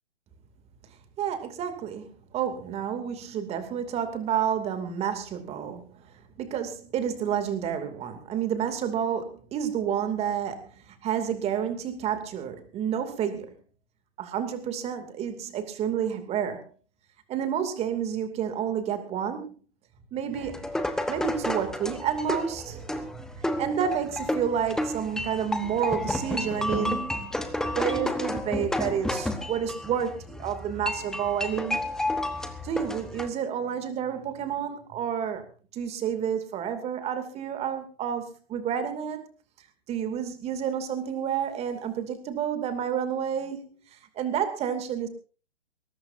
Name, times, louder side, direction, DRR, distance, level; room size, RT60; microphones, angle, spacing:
voice 1, 1.2-6.0 6.4-13.5 14.2-16.6 17.3-19.5 20.1-20.7 21.1-23.2 23.5-27.2 27.7-31.8 32.6-35.4 35.7-39.3 39.9-43.7 44.2-45.1, right 8 dB, 20° right, 8 dB, 2.6 m, -30 dB
zoo amazon percussion, 20.3-33.3, left 1 dB, ahead, 1.1 m, -31 dB
21.5 x 18.0 x 2.7 m, 0.37 s
hypercardioid pair, 140°, 34 cm